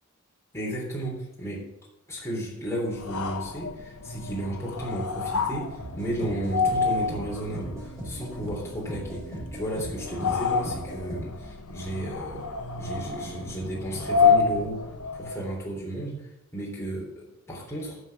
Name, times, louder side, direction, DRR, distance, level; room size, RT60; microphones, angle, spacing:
voice 1, 0.5-1.6 2.1-12.4 12.8-14.8 15.1-16.2 16.5-18.0, right 1 dB, 15° left, -3 dB, 3.3 m, -33 dB
sound 1, 2.9-15.5, left 5 dB, 80° left, 1.0 m, -29 dB
sound 2, 5.8-11.3, right 1 dB, 15° right, 5.0 m, -38 dB
9.3 x 7.2 x 7.0 m, 0.88 s
head